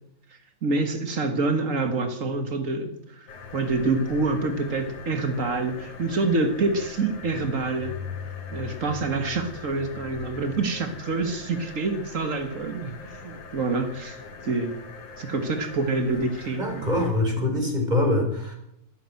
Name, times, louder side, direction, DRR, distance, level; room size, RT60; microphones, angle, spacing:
voice 1, 0.6-7.9 8.5-14.8 15.2-16.9 17.4-17.6, right 3 dB, 85° right, 7 dB, 0.7 m, -27 dB
sound 1, 3.3-17.3, left 5 dB, 60° left, 3.2 m, -41 dB
voice 2, 16.6-18.5, left 1 dB, 10° right, 3 dB, 4.2 m, -24 dB
14.0 x 13.0 x 7.8 m, 0.78 s
omnidirectional pair, 4.1 m